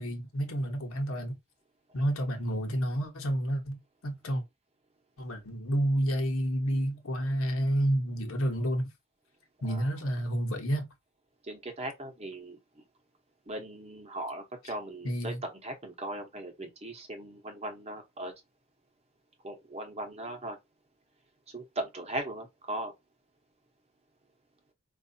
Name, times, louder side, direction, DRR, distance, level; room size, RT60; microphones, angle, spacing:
voice 1, 0.0-1.4 1.9-4.4 5.2-8.9 9.6-10.9 15.0-15.4, right 1 dB, 70° left, 1.0 m, -30 dB
voice 2, 11.4-12.8 13.5-18.3 19.4-20.6 21.5-22.9, right 1 dB, 30° right, 0.9 m, -38 dB
4.6 x 2.4 x 2.7 m
head